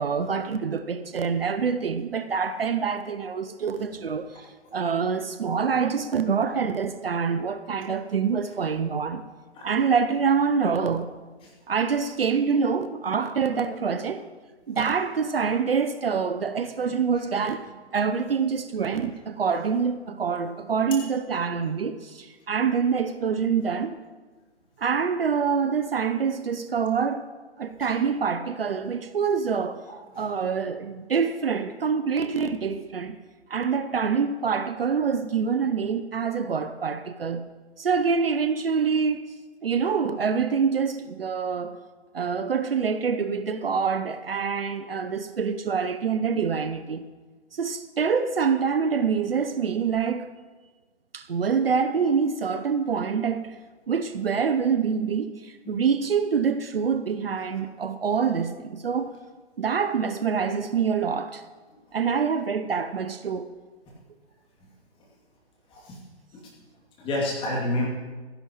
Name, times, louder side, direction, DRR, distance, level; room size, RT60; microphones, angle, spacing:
voice 1, 0.0-4.4 4.7-9.2 9.6-11.1 11.7-14.2 14.7-17.7 17.9-24.0 24.8-27.2 27.6-29.8 30.2-33.2 33.5-37.4 37.8-41.8 42.1-47.1 47.5-50.3 51.1-53.6 53.9-59.1 59.6-61.4 61.9-63.5, right 6 dB, 55° right, 0.9 m, -26 dB
voice 2, 67.0-67.9, left 1 dB, 15° left, 2.6 m, -29 dB
26.5 x 11.0 x 3.1 m
figure-of-eight pair, 125°, 34 cm